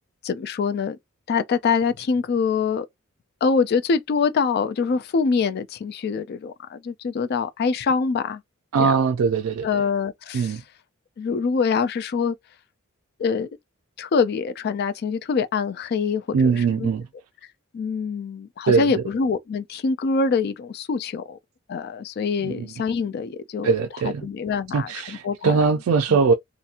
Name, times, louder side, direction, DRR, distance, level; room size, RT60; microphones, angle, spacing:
voice 1, 0.2-1.0 1.3-2.9 3.4-8.4 8.8-8.9 9.6-10.6 11.2-12.4 13.2-13.5 14.0-16.9 17.7-21.4 21.7-23.7 24.0-25.6, left 5 dB, 50° left, 0.3 m, -24 dB
voice 2, 8.7-9.7 10.3-10.6 16.3-17.1 18.7-19.0 22.4-22.7 23.6-24.3 24.7-26.3, right 5 dB, 85° right, 0.4 m, -21 dB
2.8 x 2.5 x 2.4 m
head